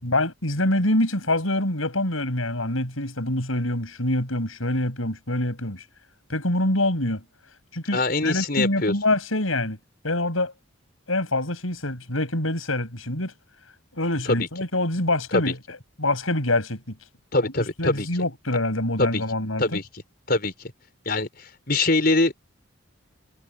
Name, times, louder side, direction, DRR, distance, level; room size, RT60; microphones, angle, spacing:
voice 1, 0.0-5.8 6.3-7.2 7.7-9.8 10.0-10.5 11.1-13.3 14.0-16.9 17.8-19.8, left 1 dB, 85° left, 7.8 m, -25 dB
voice 2, 7.9-8.9 14.3-14.5 15.3-15.5 17.3-18.1 19.0-19.2 19.6-19.9 20.3-20.7 21.0-22.3, left 2 dB, 50° left, 5.0 m, -23 dB
head